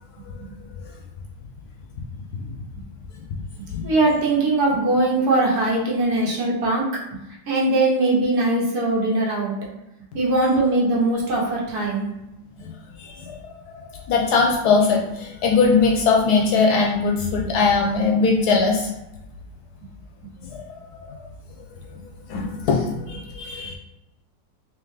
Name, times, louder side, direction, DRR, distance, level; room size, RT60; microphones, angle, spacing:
voice 1, 3.8-6.9 7.1-9.5 10.1-12.1, right 2 dB, 65° right, -4 dB, 1.4 m, -21 dB
voice 2, 13.0-13.4 14.1-18.9 20.5-20.6 20.9-21.1 22.3-23.7, left 4 dB, 70° left, -1 dB, 1.0 m, -20 dB
3.6 x 3.1 x 3.2 m, 0.93 s
omnidirectional pair, 1.9 m